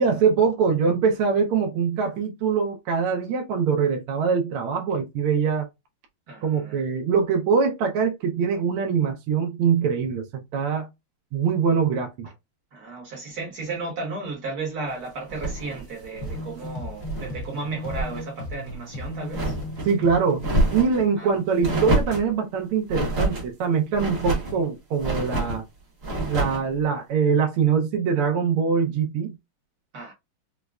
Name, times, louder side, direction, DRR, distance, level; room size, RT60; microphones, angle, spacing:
voice 1, 0.0-5.7 6.4-10.9 11.3-12.3 19.8-20.5 20.7-25.6 26.3-29.3, right 6 dB, 80° right, 1.6 m, -23 dB
voice 2, 6.3-6.8 12.7-19.5 21.1-21.3 21.6-21.7 29.9-30.1, right 3 dB, 55° right, 1.3 m, -34 dB
sound 1, 15.3-17.4 17.7-18.2 18.6-19.9 20.4-21.0 21.6-22.3 22.9-23.5 23.9-24.6 25.0-25.6 26.0-26.7, right 2 dB, 40° right, 1.0 m, -27 dB
sound 2, 16.2-20.7, left 1 dB, 65° left, 1.8 m, -35 dB
5.0 x 2.1 x 2.3 m
omnidirectional pair, 2.4 m